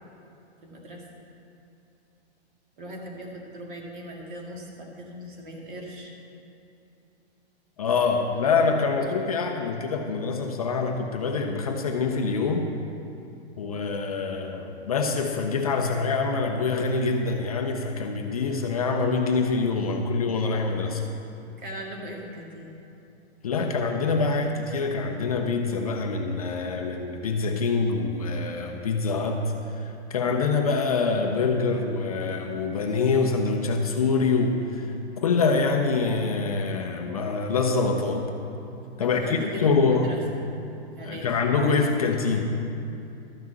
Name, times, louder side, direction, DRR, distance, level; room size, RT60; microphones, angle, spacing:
voice 1, 0.6-1.0 2.8-6.1 21.6-22.7 32.9-33.0 39.0-40.2 41.0-41.3, equal, 45° right, -1 dB, 2.1 m, -39 dB
voice 2, 7.8-12.7 13.6-21.0 23.4-29.5 29.8-38.3 39.0-40.1 41.1-42.5, left 4 dB, 35° left, 3 dB, 0.5 m, -25 dB
13.0 x 5.8 x 7.6 m, 2.8 s
hypercardioid pair, 175°, 33 cm